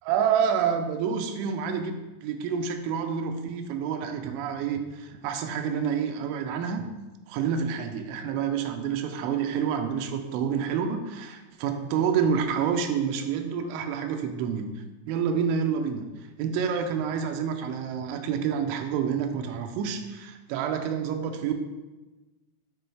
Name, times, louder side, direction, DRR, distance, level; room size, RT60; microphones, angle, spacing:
voice 1, 0.0-6.9 7.3-14.7 15.1-16.1 16.4-21.5, right 7 dB, 90° right, 5 dB, 3.0 m, -28 dB
8.9 x 4.1 x 3.3 m, 1.1 s
omnidirectional pair, 5.4 m